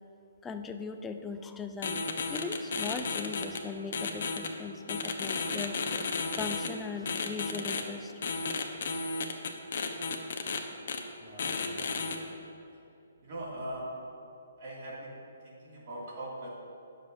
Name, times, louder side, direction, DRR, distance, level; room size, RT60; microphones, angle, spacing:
voice 1, 0.4-8.1, left 5 dB, 10° left, 7 dB, 0.4 m, -39 dB
sound 1, 1.8-3.6 3.9-4.5 4.9-6.7 7.1-7.8 8.2-10.6 10.9-11.0 11.4-12.2, left 4 dB, 60° left, 1.0 m, -33 dB
voice 2, 11.1-12.1 13.2-14.0 14.6-16.5, right 1 dB, 45° right, -5 dB, 2.6 m, -42 dB
19.5 x 7.0 x 2.8 m, 2.8 s
hypercardioid pair, 165°, 0 cm